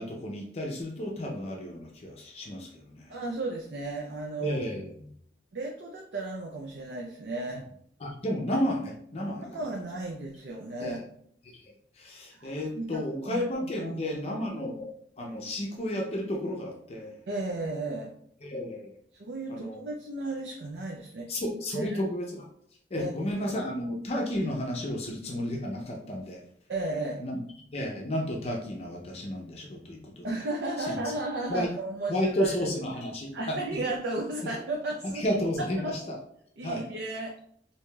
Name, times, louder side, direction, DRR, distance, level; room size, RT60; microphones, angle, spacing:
voice 1, 0.0-3.1 4.4-5.1 8.0-9.6 10.8-11.0 11.5-14.9 15.2-17.1 18.4-18.9 19.5-19.8 21.3-22.5 22.9-26.4 27.2-27.4 27.7-30.3 30.8-31.1 31.5-31.7 32.1-33.6 35.0-36.2 36.6-36.8, left 1 dB, 35° left, 0 dB, 0.5 m, -32 dB
voice 2, 3.1-4.6 5.5-7.7 9.3-11.0 12.3-13.4 13.8-14.2 17.3-18.1 19.1-21.4 21.7-22.0 23.0-23.1 26.7-27.2 30.2-32.7 33.3-35.2 35.6-36.0 36.6-37.4, right 2 dB, 75° right, 0 dB, 0.5 m, -34 dB
4.7 x 2.7 x 2.2 m, 0.65 s
head